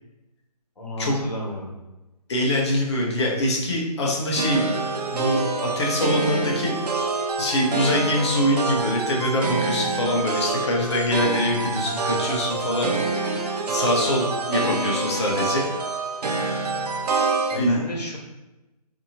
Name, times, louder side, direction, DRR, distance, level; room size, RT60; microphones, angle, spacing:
voice 1, 0.8-1.7 17.5-18.2, left 1 dB, 90° left, -2 dB, 1.0 m, -32 dB
voice 2, 2.3-4.6 5.1-6.8 7.4-15.6 17.6-17.9, left 1 dB, 45° left, -1 dB, 0.7 m, -24 dB
sound 1, 4.4-17.6, right 3 dB, 75° right, 0.5 m, -26 dB
2.7 x 2.7 x 2.6 m, 1.0 s
figure-of-eight pair, 150°, 20 cm